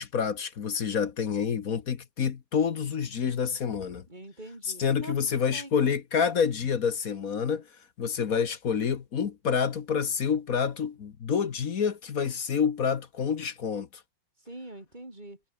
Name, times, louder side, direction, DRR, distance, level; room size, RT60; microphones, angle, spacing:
voice 1, 0.0-4.0 4.8-7.7 8.0-14.0, left 7 dB, 50° left, 1.5 m, -28 dB
voice 2, 4.1-5.1 5.5-5.7 14.4-15.4, right 1 dB, 20° right, 4.7 m, -44 dB
omnidirectional pair, 2.1 m